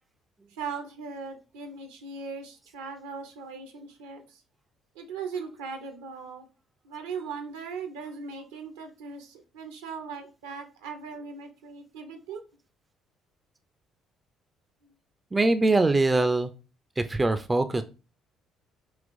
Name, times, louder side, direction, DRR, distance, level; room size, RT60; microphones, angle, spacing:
voice 1, 0.5-4.4 4.9-6.5 6.8-12.4, right 5 dB, 75° right, 6 dB, 0.6 m, -39 dB
voice 2, 15.3-16.5 17.0-17.8, right 2 dB, 20° right, 10 dB, 0.4 m, -23 dB
5.0 x 2.9 x 2.5 m, 0.32 s
figure-of-eight pair, 50°, 0 cm